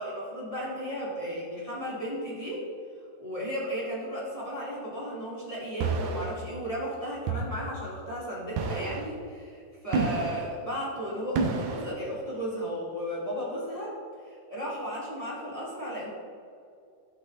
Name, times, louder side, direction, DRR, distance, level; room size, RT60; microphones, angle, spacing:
voice 1, 0.0-2.7 3.2-13.9 14.2-16.1, equal, 10° left, -7 dB, 2.4 m, -35 dB
sound 1, 5.8-6.3 7.3-7.6 8.6-9.1 9.9-10.5 11.4-11.9, right 4 dB, 65° right, 2.0 m, -29 dB
17.5 x 6.0 x 4.2 m, 2.5 s
omnidirectional pair, 4.5 m